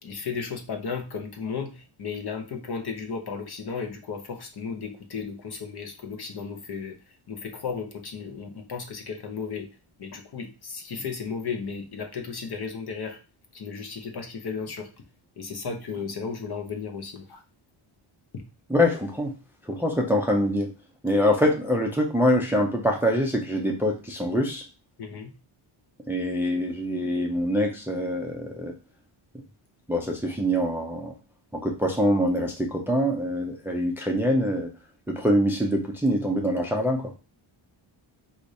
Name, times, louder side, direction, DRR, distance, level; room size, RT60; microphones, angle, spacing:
voice 1, 0.0-7.0 7.3-9.7 10.0-13.2 13.5-14.9 15.4-17.4 18.3-18.4 25.0-25.3, left 5 dB, 50° left, 4 dB, 0.9 m, -34 dB
voice 2, 18.7-19.3 19.7-20.7 21.0-24.6 26.1-28.7 29.9-31.1 31.5-34.7 35.1-37.1, equal, 5° right, 1 dB, 0.5 m, -24 dB
4.9 x 2.6 x 4.0 m, 0.32 s
wide cardioid pair, 170°, 49 cm